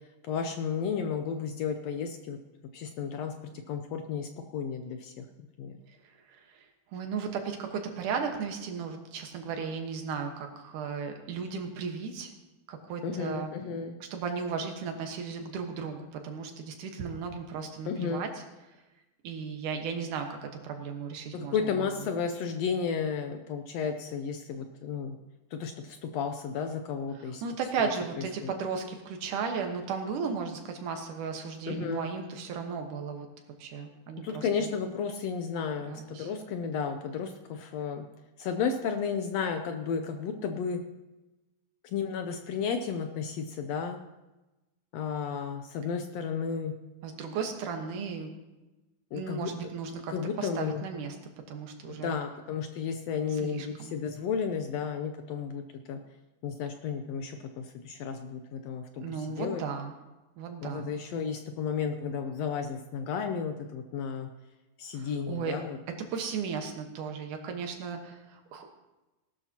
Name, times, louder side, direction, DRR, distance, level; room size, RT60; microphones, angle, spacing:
voice 1, 0.2-2.4 2.7-3.4 3.7-5.3 5.6-5.8 13.0-13.9 17.9-18.2 21.3-25.2 25.5-27.4 27.8-27.9 28.4-28.5 31.7-32.1 34.2-38.1 38.4-40.8 41.8-44.0 44.9-46.7 49.1-49.5 50.1-50.8 52.0-55.6 55.9-56.0 56.4-59.6 60.6-64.3 64.8-65.8, left 6 dB, 75° left, 6 dB, 1.6 m, -33 dB
voice 2, 6.3-6.6 6.9-12.3 12.7-13.5 14.1-18.3 19.2-21.9 27.4-33.3 33.6-34.7 35.9-36.3 47.0-48.3 49.1-51.2 51.5-52.2 53.3-53.9 59.0-59.9 60.4-60.9 64.9-65.6 66.1-68.7, right 5 dB, 85° right, 4 dB, 2.9 m, -35 dB
19.0 x 12.0 x 2.9 m, 1.1 s
omnidirectional pair, 3.5 m